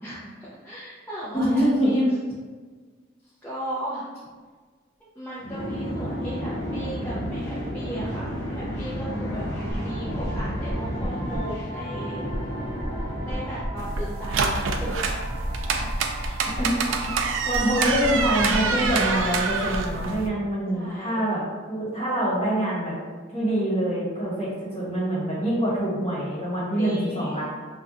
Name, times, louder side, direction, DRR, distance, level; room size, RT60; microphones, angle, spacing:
voice 1, 0.0-2.0 3.4-4.1 5.2-9.5 9.8-12.2 13.2-15.1 17.7-17.9 20.7-21.2 26.8-27.4, right 1 dB, 10° left, -10 dB, 0.4 m, -36 dB
voice 2, 1.3-2.0 16.6-17.1 17.5-21.4 21.7-22.9 23.3-27.4, right 1 dB, 35° left, -8 dB, 1.2 m, -25 dB
sound 1, 5.4-14.4, equal, 60° left, 0.7 m, -32 dB
sound 2, 9.7-20.1, equal, 15° right, 0.8 m, -34 dB
sound 3, 13.8-20.3, right 4 dB, 75° right, 0.3 m, -26 dB
2.3 x 2.2 x 3.9 m, 1.5 s
head